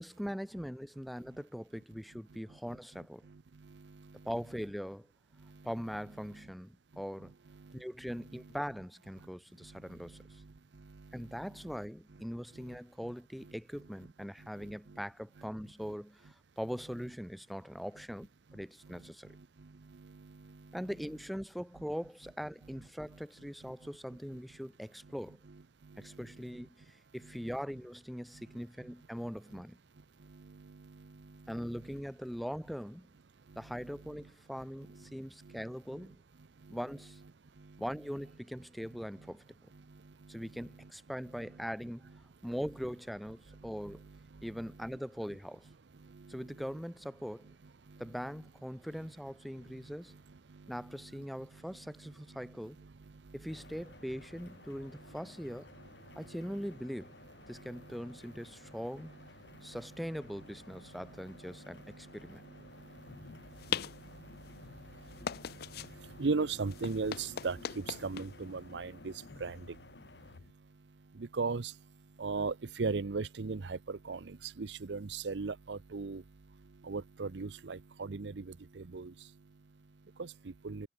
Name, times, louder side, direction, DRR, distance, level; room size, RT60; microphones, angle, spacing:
voice 1, 0.0-3.2 4.2-5.1 5.6-7.3 7.7-10.2 11.1-19.4 20.7-25.4 26.0-29.8 31.5-33.1 33.5-36.2 36.7-37.2 37.8-39.4 40.3-42.1 42.4-44.0 44.4-45.7 46.3-47.5 48.0-50.2 50.7-52.8 53.3-55.7 56.2-57.1 57.5-59.1 59.6-62.4, equal, ahead, 0.8 m, -41 dB
voice 2, 2.5-4.3 5.4-5.7 6.2-6.5 6.9-8.5 9.2-9.3 9.6-11.8 12.1-12.2 12.5-13.1 13.4-13.6 14.0-14.1 14.4-15.0 15.4-15.5 15.8-15.9 18.5-20.9 23.1-23.7 24.3-24.4 25.0-25.1 25.4-26.7 27.2-27.5 28.3-28.6 29.5-29.6 29.9-32.0 33.4-34.3 34.6-36.1 36.4-36.8 37.4-37.8 39.2-39.3 39.7-40.9 41.3-41.7 43.5-45.0 45.9-46.8 47.4-47.5 47.8-48.2 48.9-49.1 49.5-53.8 54.1-55.6 56.0-56.7 57.5-59.2 59.4-59.8 60.7-80.9, right 4 dB, 85° right, 0.7 m, -43 dB
sound 1, 53.5-70.4, left 2 dB, 75° left, 5.5 m, -56 dB
sound 2, 63.0-70.5, left 8 dB, 60° left, 0.5 m, -43 dB
head